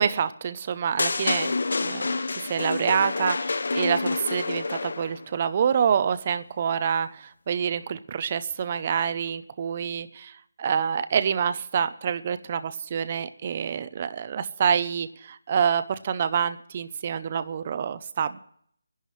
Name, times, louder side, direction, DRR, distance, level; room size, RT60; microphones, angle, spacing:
voice 1, 0.0-1.5 1.8-2.0 2.3-10.3 10.6-18.4, right 7 dB, 30° right, 13 dB, 0.5 m, -27 dB
sound 1, 1.0-5.2, left 3 dB, 65° left, 0.5 m, -28 dB
26.5 x 11.0 x 3.1 m, 0.64 s
figure-of-eight pair, 170°, 0 cm